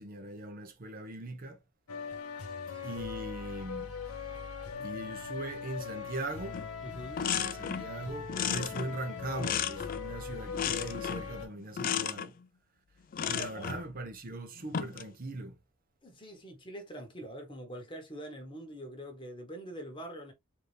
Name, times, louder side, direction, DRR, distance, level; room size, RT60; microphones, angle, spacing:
voice 1, 0.0-1.6 2.8-3.9 4.8-6.6 7.4-12.3 13.3-15.6, right 2 dB, 40° right, 0.6 m, -40 dB
sound 1, 1.9-11.5, left 6 dB, 80° left, 0.9 m, -40 dB
sound 2, 6.5-6.7 7.0-7.9 8.3-10.1 10.5-11.3 11.8-12.3 13.1-13.8 14.6-15.1, left 8 dB, 40° left, 0.3 m, -34 dB
voice 2, 6.8-7.2 13.2-13.7 16.0-20.3, right 1 dB, 20° left, 1.2 m, -44 dB
4.0 x 2.7 x 3.2 m
head